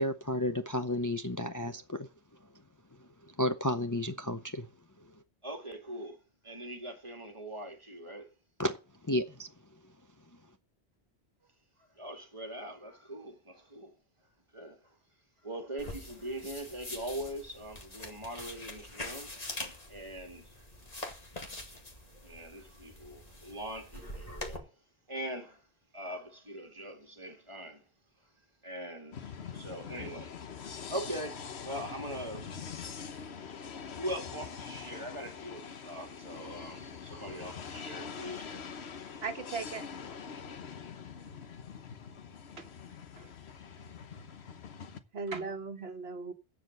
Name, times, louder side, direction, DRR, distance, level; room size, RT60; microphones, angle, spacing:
voice 1, 0.0-2.1 3.0-4.7 5.0-5.1 8.6-8.8 9.0-9.5, left 1 dB, 20° left, 0.6 m, -32 dB
voice 2, 5.4-8.3 12.0-13.9 14.5-15.0 15.4-19.3 19.9-20.6 22.2-24.7 25.1-25.7 25.9-27.8 28.6-30.4 30.9-32.6 32.9-33.1 34.0-38.9, right 1 dB, 25° right, 2.3 m, -42 dB
sound 1, 15.8-24.6, left 1 dB, 35° left, 2.2 m, -44 dB
sound 2, 29.1-45.0, left 6 dB, 75° left, 1.2 m, -44 dB
voice 3, 39.2-39.8 42.6-42.7 43.2-43.3 45.1-46.3, right 4 dB, 70° right, 1.5 m, -38 dB
14.0 x 5.0 x 7.9 m
omnidirectional pair, 1.1 m